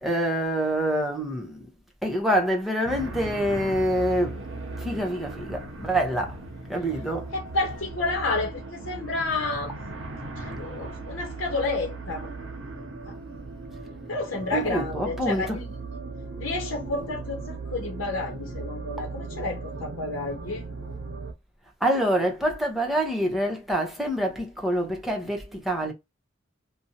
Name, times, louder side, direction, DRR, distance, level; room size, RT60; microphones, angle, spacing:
voice 1, 0.0-1.7 2.0-4.4 4.8-6.4 6.7-7.3 14.5-15.6 21.8-25.9, right 1 dB, ahead, 0.8 m, -26 dB
sound 1, 2.8-21.3, right 3 dB, 80° right, 0.7 m, -37 dB
voice 2, 7.3-9.8 10.4-12.3 13.1-13.2 14.1-15.7 16.4-20.7, left 3 dB, 90° left, 0.7 m, -30 dB
2.6 x 2.1 x 2.7 m
head